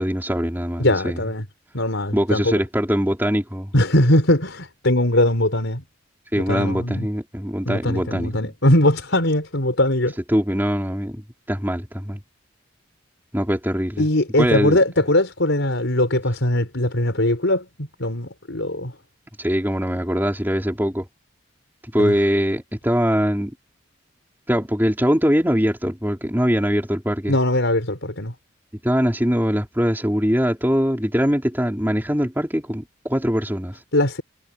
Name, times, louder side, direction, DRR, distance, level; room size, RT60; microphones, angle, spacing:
voice 1, 0.0-1.2 2.1-3.7 6.3-8.5 10.3-12.2 13.3-14.0 14.4-14.8 19.4-21.0 21.9-23.5 24.5-27.4 28.8-33.8, equal, 10° right, 3.9 m, -22 dB
voice 2, 0.8-1.4 1.7-2.6 3.7-5.8 6.3-7.1 7.6-10.1 14.0-18.9 22.0-22.1 27.3-28.3 33.9-34.2, left 1 dB, 75° left, 4.2 m, -20 dB
head